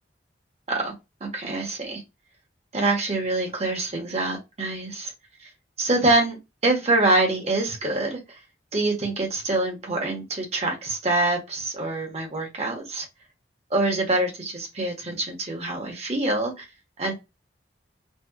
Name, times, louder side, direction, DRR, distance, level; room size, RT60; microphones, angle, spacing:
voice 1, 1.2-2.0 2.7-5.1 5.8-6.4 6.6-8.2 8.7-13.1 13.7-16.6 17.0-17.1, right 2 dB, 35° right, 0 dB, 0.8 m, -25 dB
2.7 x 2.1 x 2.2 m, 0.24 s
head